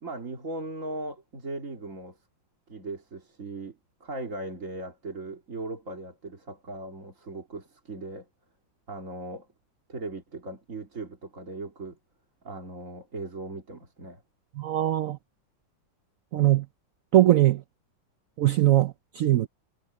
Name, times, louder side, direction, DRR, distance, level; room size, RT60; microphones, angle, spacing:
voice 1, 0.0-2.2 2.7-8.3 8.9-9.5 9.9-12.0 12.4-14.2, right 2 dB, 40° right, 3.1 m, -38 dB
voice 2, 14.6-15.2 16.3-16.7 17.1-17.6 18.4-19.5, right 14 dB, 75° right, 0.7 m, -21 dB
omnidirectional pair, 2.1 m